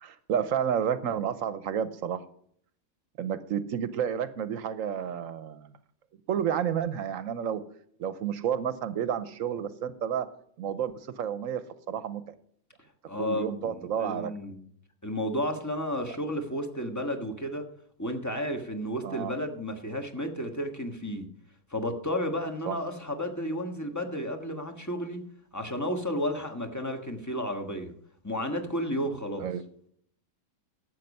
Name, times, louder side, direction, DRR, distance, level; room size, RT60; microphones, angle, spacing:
voice 1, 0.0-2.2 3.2-5.7 6.3-7.6 8.0-10.3 10.6-12.2 13.2-14.3 19.0-19.3 22.7-22.8 29.4-29.6, right 8 dB, 75° right, 14 dB, 1.1 m, -30 dB
voice 2, 13.1-14.6 15.0-17.6 18.0-21.2 21.7-25.2 25.5-27.9 28.2-29.5, equal, 15° left, 5 dB, 1.3 m, -32 dB
12.0 x 8.2 x 5.4 m, 0.64 s
omnidirectional pair, 1.4 m